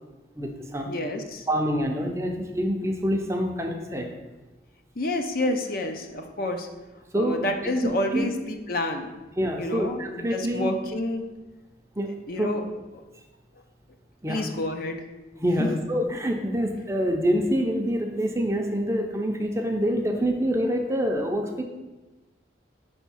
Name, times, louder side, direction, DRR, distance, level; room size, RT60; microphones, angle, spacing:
voice 1, 0.4-1.0 1.5-4.1 7.1-7.4 7.8-8.3 9.4-10.8 12.0-12.5 14.2-14.4 15.4-21.6, equal, 15° right, 2 dB, 0.5 m, -26 dB
voice 2, 0.9-1.5 5.0-6.7 7.1-9.1 9.6-11.3 12.3-12.6 14.3-15.0 15.6-15.7, left 1 dB, 50° left, 5 dB, 0.5 m, -29 dB
5.1 x 3.5 x 5.5 m, 1.1 s
head